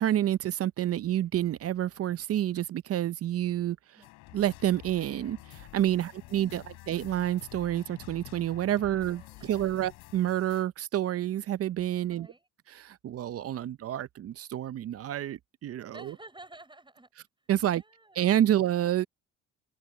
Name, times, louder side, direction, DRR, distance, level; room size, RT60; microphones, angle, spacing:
voice 1, 0.0-4.0 4.3-12.3 12.7-16.1 17.5-17.8 18.2-19.1, right 12 dB, 50° right, 0.7 m, -29 dB
sound 1, 4.0-10.6, left 20 dB, 85° left, 3.3 m, -49 dB
voice 2, 5.9-6.7 8.8-9.9 12.0-12.5 15.9-17.1 17.4-18.4, right 2 dB, 15° right, 4.8 m, -53 dB
open air
supercardioid pair, 70°, 30 cm